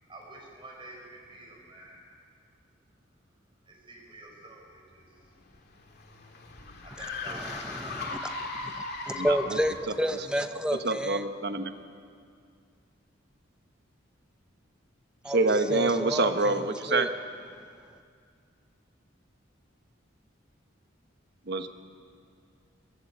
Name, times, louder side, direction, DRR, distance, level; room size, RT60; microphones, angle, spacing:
voice 1, 0.1-2.1 3.6-5.3 6.8-7.8 8.2-8.5, right 2 dB, 25° right, -1 dB, 5.4 m, -48 dB
sound 1, 5.2-9.8, left 3 dB, 55° left, 2.5 m, -37 dB
voice 2, 7.3-8.2 9.1-11.2 15.2-17.1, equal, 5° right, 8 dB, 0.8 m, -31 dB
voice 3, 9.1-9.6 10.8-11.7 15.3-17.1 21.5-21.7, right 3 dB, 55° right, 8 dB, 1.2 m, -26 dB
23.5 x 17.0 x 7.4 m, 2.2 s
head